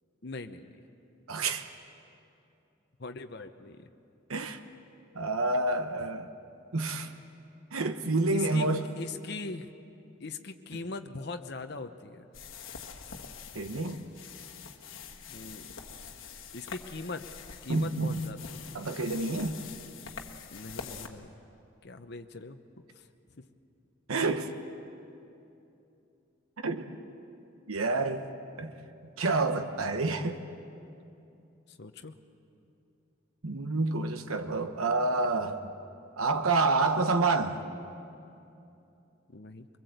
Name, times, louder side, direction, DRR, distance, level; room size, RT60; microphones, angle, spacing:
voice 1, 0.2-0.8 3.0-3.9 8.3-9.7 10.2-12.3 15.3-15.7 16.5-17.3 17.6-18.8 20.5-21.3 21.8-22.6 23.0-23.1 23.3-23.5 31.7-32.1 39.3-39.7, left 3 dB, 50° left, 7 dB, 0.9 m, -41 dB
voice 2, 1.3-1.7 4.3-4.6 5.1-6.3 6.7-7.1 7.7-8.8 13.5-14.0 17.7-18.2 18.7-19.6 24.1-24.5 26.6-26.9 27.7-28.3 28.6-28.7 29.2-30.4 33.4-35.7 36.2-37.6, right 3 dB, 90° right, 7 dB, 1.1 m, -28 dB
sound 1, 12.3-21.1, left 6 dB, 70° left, 1.5 m, -45 dB
23.5 x 21.0 x 8.1 m, 2.7 s
head